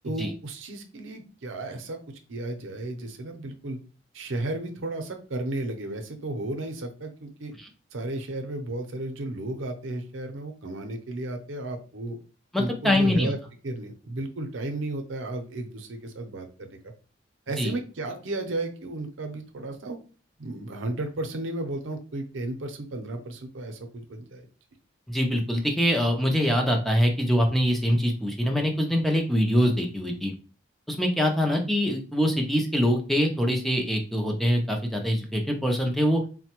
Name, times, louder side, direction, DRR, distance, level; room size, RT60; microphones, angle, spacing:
voice 1, 0.0-2.0 2.3-3.8 4.1-7.5 7.9-12.2 12.6-13.4 13.6-16.7 17.5-20.0 20.4-24.4, right 2 dB, 85° right, 5 dB, 0.6 m, -33 dB
voice 2, 12.5-13.3 17.6-17.7 25.1-30.3 30.9-36.2, equal, ahead, 2 dB, 0.5 m, -24 dB
3.9 x 2.2 x 2.9 m, 0.36 s
head